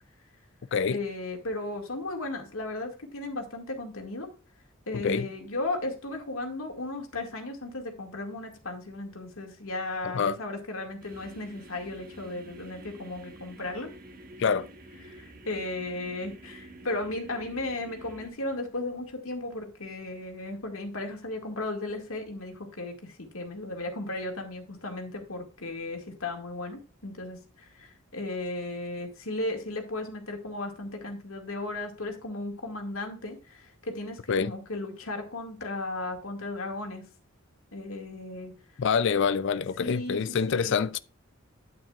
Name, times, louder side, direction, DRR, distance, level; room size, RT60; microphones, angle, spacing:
voice 1, 0.9-4.3 4.9-13.9 15.0-37.1 37.7-38.5 39.8-40.8, left 2 dB, 80° left, 2.2 m, -35 dB
voice 2, 4.9-5.3 10.1-10.4 14.4-14.7 34.3-34.5 38.8-41.0, left 6 dB, 60° left, 0.4 m, -26 dB
sound 1, 11.0-18.3, right 1 dB, 45° right, 1.3 m, -48 dB
8.9 x 8.9 x 2.5 m
head